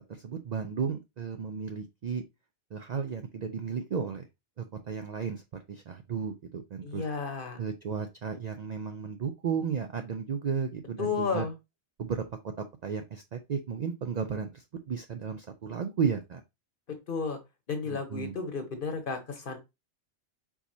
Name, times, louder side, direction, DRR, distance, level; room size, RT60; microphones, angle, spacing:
voice 1, 0.1-2.2 2.7-4.3 4.6-5.4 5.7-7.0 7.6-11.5 12.0-12.2 12.8-16.4 17.9-18.4, right 6 dB, 60° right, 7 dB, 0.4 m, -34 dB
voice 2, 6.8-7.6 11.0-11.5 17.1-17.4 17.7-19.6, left 5 dB, 50° left, 6 dB, 1.0 m, -32 dB
4.7 x 4.0 x 2.7 m, 0.23 s
omnidirectional pair, 1.2 m